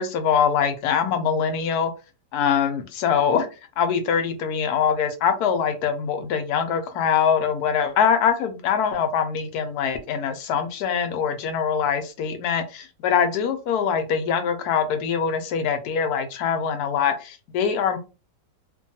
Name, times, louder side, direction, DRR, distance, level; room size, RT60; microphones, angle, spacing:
voice 1, 0.0-1.9 2.3-3.5 3.8-18.0, left 7 dB, 75° left, 7 dB, 1.1 m, -23 dB
2.9 x 2.2 x 2.7 m, 0.31 s
omnidirectional pair, 1.8 m